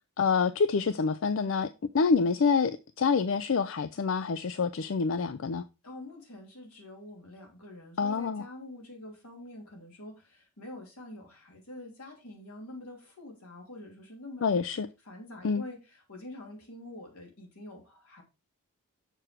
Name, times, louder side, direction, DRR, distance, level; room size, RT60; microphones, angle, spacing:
voice 1, 0.2-1.7 1.9-5.6 8.0-8.4 14.4-14.9 15.4-15.6, left 5 dB, 65° left, 0.4 m, -27 dB
voice 2, 5.8-14.4 15.0-18.2, left 1 dB, 90° left, 3.2 m, -46 dB
6.8 x 6.1 x 4.6 m
head